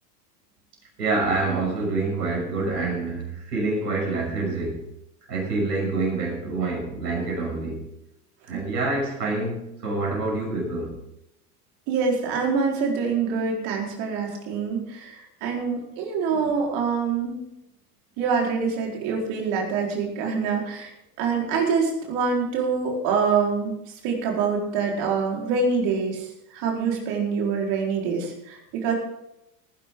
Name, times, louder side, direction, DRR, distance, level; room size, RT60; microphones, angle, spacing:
voice 1, 1.0-4.8 5.3-7.8 8.5-11.0, right 3 dB, 85° right, -1 dB, 6.5 m, -26 dB
voice 2, 11.9-17.4 18.2-20.9 21.2-23.8 24.0-28.9, right 5 dB, 60° right, -1 dB, 4.7 m, -25 dB
18.5 x 11.0 x 3.9 m, 0.85 s
hypercardioid pair, 90°, 47 cm